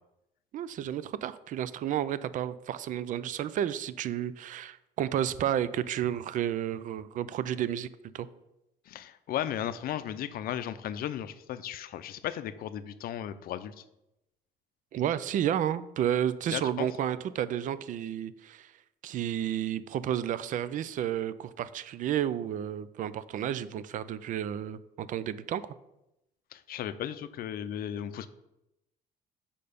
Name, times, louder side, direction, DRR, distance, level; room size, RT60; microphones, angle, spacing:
voice 1, 0.5-7.9 8.1-8.3 14.9-18.7 19.0-25.6, right 10 dB, 50° right, 15 dB, 0.4 m, -31 dB
voice 2, 8.9-13.8 16.5-16.9 26.5-28.3, left 10 dB, 60° left, 12 dB, 0.5 m, -35 dB
6.7 x 5.3 x 5.1 m, 0.89 s
cardioid pair, 110°, 17 cm